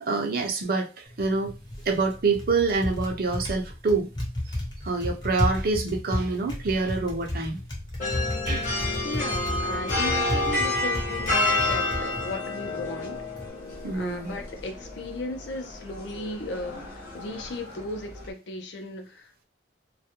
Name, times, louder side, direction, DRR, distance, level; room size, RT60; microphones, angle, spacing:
voice 1, 0.0-1.5 1.9-4.1 4.8-7.6 8.4-8.7 13.8-14.4, right 4 dB, 50° right, 0.4 m, -26 dB
Typing, 1.1-13.5, left 1 dB, 25° left, 0.6 m, -33 dB
sound 1, 8.0-18.3, left 2 dB, 40° left, 0.9 m, -30 dB
voice 2, 9.0-13.3 13.9-19.4, left 2 dB, 70° left, 0.5 m, -36 dB
2.2 x 2.1 x 2.9 m
head